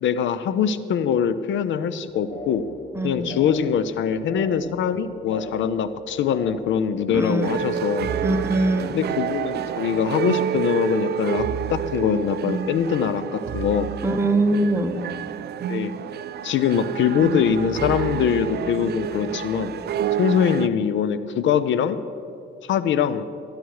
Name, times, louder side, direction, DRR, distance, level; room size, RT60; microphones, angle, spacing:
voice 1, 0.0-2.6 3.0-8.1 8.9-13.9 15.7-15.9 16.4-19.7 20.2-22.0 22.6-23.3, left 8 dB, 70° left, 13 dB, 0.6 m, -23 dB
sound 1, 1.9-10.9 11.1-11.8 12.1-12.8 13.1-13.6 16.8-20.0, left 1 dB, 35° left, 1.9 m, -41 dB
voice 2, 2.9-3.3 7.1-7.6 8.2-9.0 14.0-15.0, right 2 dB, 10° right, 6 dB, 1.0 m, -22 dB
sound 2, 7.4-20.7, right 9 dB, 55° right, 0.5 m, -29 dB
14.0 x 10.5 x 4.7 m, 2.5 s
cardioid pair, 90°, 20 cm